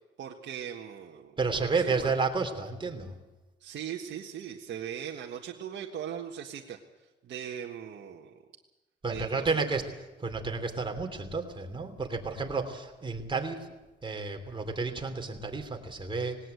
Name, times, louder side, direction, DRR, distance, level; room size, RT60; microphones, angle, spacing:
voice 1, 0.2-2.1 3.6-6.8 7.2-8.4 9.1-9.8, right 9 dB, 65° right, 0 dB, 1.6 m, -39 dB
voice 2, 1.4-3.2 9.0-9.8 10.2-13.6 14.0-16.4, right 4 dB, 25° right, 4 dB, 3.3 m, -31 dB
19.0 x 18.0 x 8.0 m, 1.1 s
cardioid pair, 90°, 20 cm